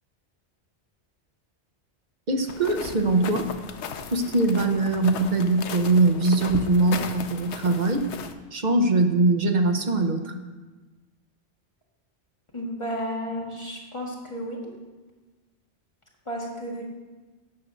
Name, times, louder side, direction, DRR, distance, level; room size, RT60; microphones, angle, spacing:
voice 1, 2.3-3.5 4.1-8.1 8.5-10.4, right 2 dB, 45° right, 6 dB, 0.9 m, -22 dB
sound 1, 2.5-8.3, left 6 dB, 80° left, 1.0 m, -36 dB
voice 2, 12.5-14.7 16.3-16.8, equal, 25° left, -3 dB, 1.8 m, -32 dB
9.8 x 6.5 x 6.3 m, 1.2 s
omnidirectional pair, 1.1 m